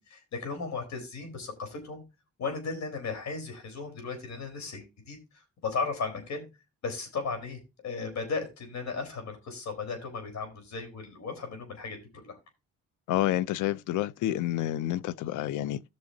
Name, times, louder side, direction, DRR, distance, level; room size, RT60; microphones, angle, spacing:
voice 1, 0.1-2.0 2.4-6.5 6.8-12.4, left 4 dB, 65° left, 4.0 m, -36 dB
voice 2, 13.1-15.8, left 14 dB, 85° left, 0.6 m, -29 dB
15.0 x 6.2 x 2.7 m
cardioid pair, 90°, 30 cm